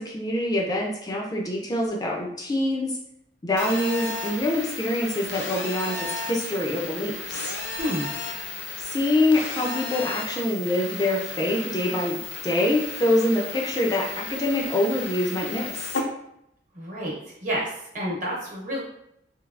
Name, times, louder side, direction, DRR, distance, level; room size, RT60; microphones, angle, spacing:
voice 1, 0.0-2.9 3.4-7.5 8.8-15.9, left 1 dB, 20° left, -1 dB, 0.4 m, -25 dB
Telephone, 3.6-16.0, left 4 dB, 85° left, 0.5 m, -34 dB
voice 2, 7.8-8.1 16.7-17.1 17.4-18.8, equal, 45° right, -3 dB, 0.9 m, -29 dB
3.2 x 2.7 x 2.4 m, 0.77 s
head